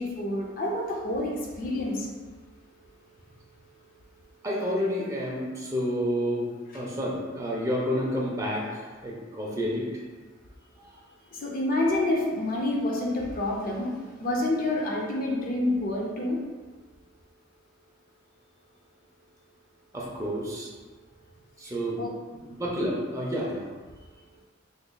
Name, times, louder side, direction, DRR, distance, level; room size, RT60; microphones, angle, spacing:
voice 1, 0.0-2.1 11.3-16.4 22.0-22.1, left 1 dB, 45° left, -1 dB, 0.5 m, -28 dB
voice 2, 4.4-6.5 6.7-9.8 10.8-10.9 19.9-20.7 21.6-22.0 22.5-23.7, equal, 15° right, -4 dB, 0.6 m, -29 dB
3.8 x 3.0 x 2.2 m, 1.3 s
head